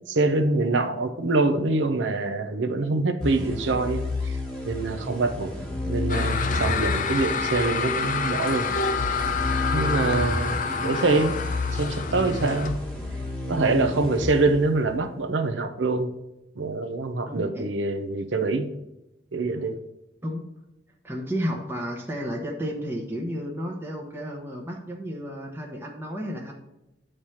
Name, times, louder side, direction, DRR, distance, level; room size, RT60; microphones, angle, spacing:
voice 1, 0.1-4.4 4.6-5.5 5.8-8.7 9.7-11.4 11.7-12.8 13.5-16.1 16.6-18.7 19.3-19.8, right 3 dB, 75° right, 7 dB, 0.7 m, -25 dB
sound 1, 3.2-15.1, left 2 dB, 5° left, 1.4 m, -31 dB
voice 2, 5.6-5.9 10.6-10.7 17.3-17.6 20.2-20.5 21.0-26.5, equal, 10° right, -1 dB, 0.9 m, -32 dB
sound 2, 6.1-12.8, left 5 dB, 45° left, 0.5 m, -28 dB
8.8 x 3.3 x 5.6 m, 0.93 s
head